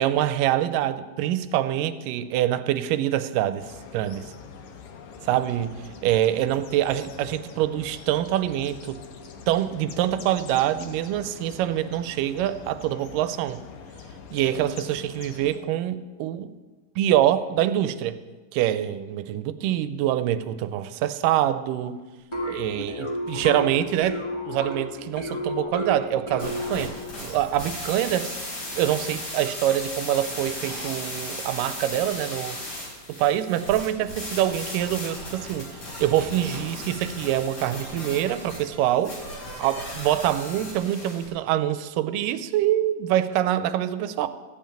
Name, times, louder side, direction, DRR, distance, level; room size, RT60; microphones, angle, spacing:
voice 1, 0.0-3.7 3.9-4.2 5.3-9.0 9.5-13.6 14.3-16.5 17.0-18.2 18.5-22.0 22.5-24.2 24.5-27.0 27.2-28.4 28.8-32.6 33.1-35.7 36.0-39.2 39.6-44.3, right 12 dB, 90° right, 13 dB, 2.2 m, -25 dB
sound 1, 3.6-15.6, left 5 dB, 65° left, 1.6 m, -44 dB
sound 2, 22.3-27.1, equal, 30° left, 0.5 m, -32 dB
sound 3, 26.4-41.3, left 1 dB, 80° left, 6.4 m, -36 dB
14.5 x 5.7 x 8.7 m, 1.3 s
omnidirectional pair, 3.8 m